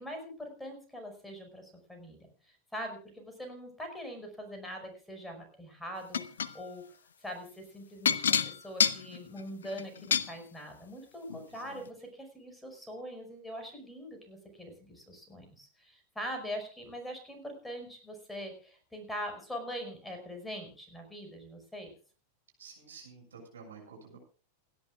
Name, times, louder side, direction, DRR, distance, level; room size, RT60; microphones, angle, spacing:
voice 1, 0.0-6.2 6.5-6.8 7.2-21.9, equal, 5° left, 4 dB, 5.5 m, -43 dB
sound 1, 6.1-6.5 8.1-10.3 11.3-11.4 11.9-12.0, left 7 dB, 65° left, 0.9 m, -28 dB
voice 2, 11.5-11.9 22.6-24.2, right 5 dB, 70° right, 1 dB, 6.7 m, -51 dB
28.5 x 11.5 x 2.4 m, 0.39 s
figure-of-eight pair, 90°, 0 cm